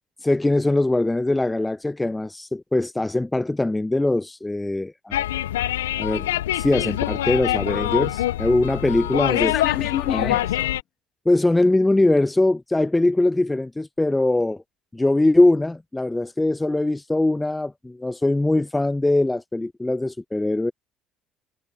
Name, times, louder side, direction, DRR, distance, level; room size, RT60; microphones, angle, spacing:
voice 1, 0.2-5.2 6.0-6.3 6.5-9.5 10.1-10.3 11.3-14.6 14.9-20.7, left 2 dB, 10° left, 0.5 m, -21 dB
sound 1, 5.1-10.8, left 14 dB, 80° left, 1.3 m, -25 dB
voice 2, 9.3-10.8, left 12 dB, 55° left, 3.2 m, -28 dB
hypercardioid pair, 60°, 0 cm